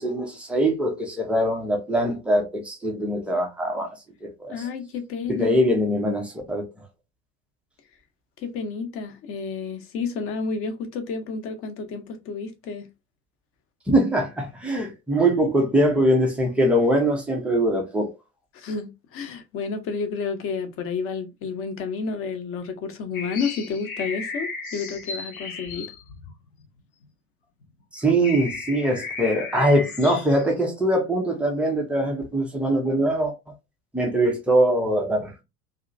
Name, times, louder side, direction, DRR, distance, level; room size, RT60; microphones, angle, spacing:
voice 1, 0.0-3.9 4.2-4.5 5.3-6.7 13.9-18.1 27.9-33.3 33.9-35.4, right 1 dB, 5° right, 0.3 m, -22 dB
voice 2, 4.5-5.6 8.4-12.9 18.5-25.9, left 5 dB, 30° left, 0.6 m, -31 dB
sound 1, 23.1-27.1 27.6-27.7 28.0-30.5, left 4 dB, 65° left, 0.8 m, -35 dB
2.7 x 2.4 x 2.4 m
figure-of-eight pair, 75°, 46 cm